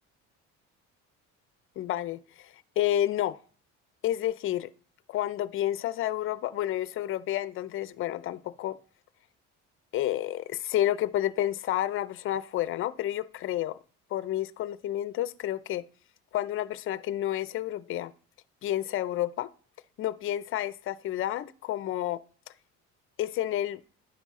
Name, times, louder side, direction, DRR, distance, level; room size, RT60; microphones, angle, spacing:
voice 1, 1.8-3.4 4.0-4.7 5.1-8.8 9.9-13.8 14.1-15.8 16.3-18.1 18.6-19.5 20.0-22.2 23.2-23.8, left 12 dB, 45° left, 0.4 m, -30 dB
10.0 x 5.5 x 3.6 m
cardioid pair, 140°, 29 cm